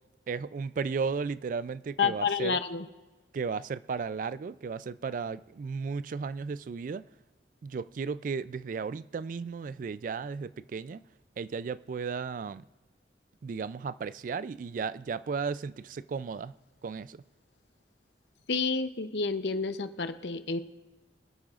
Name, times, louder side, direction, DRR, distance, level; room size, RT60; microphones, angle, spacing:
voice 1, 0.3-2.6 3.3-7.1 7.6-11.0 11.4-12.7 13.4-16.5 16.8-17.2, right 5 dB, 50° right, 0.3 m, -34 dB
voice 2, 2.0-2.8 18.5-20.6, left 5 dB, 75° left, 0.7 m, -29 dB
25.0 x 8.9 x 2.4 m
head